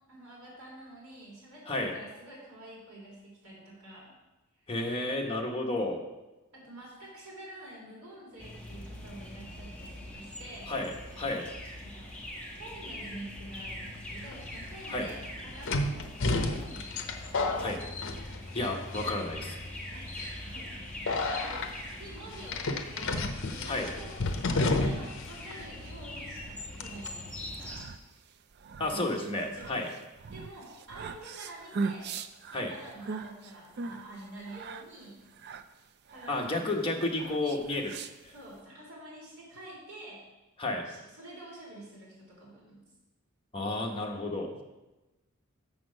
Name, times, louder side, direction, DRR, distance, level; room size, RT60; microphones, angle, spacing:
voice 1, 0.1-4.1 6.5-10.7 11.8-12.1 12.6-17.9 18.2-18.4 19.9-21.7 22.0-27.7 28.9-29.8 30.3-32.1 32.5-35.2 36.1-36.7 37.2-38.0 38.3-40.2 40.8-42.8, right 1 dB, 70° right, -5 dB, 3.5 m, -48 dB
voice 2, 4.7-6.0 10.7-11.5 14.9-15.1 17.6-17.8 18.5-19.6 23.7-23.9 28.8-29.9 32.5-32.7 36.3-37.9 40.6-40.9 43.5-44.5, left 2 dB, 25° left, 0 dB, 1.1 m, -31 dB
sound 1, 8.4-27.8, left 1 dB, 5° left, 1.3 m, -43 dB
sound 2, 14.3-14.4 15.7-18.7 18.9-19.4 20.1-20.3 21.1-21.7 22.5-25.2 25.5-25.6 26.8-27.1, left 2 dB, 60° left, 0.7 m, -31 dB
sound 3, 27.4-38.6, right 4 dB, 50° right, 0.4 m, -40 dB
7.1 x 6.1 x 6.3 m, 1.1 s
head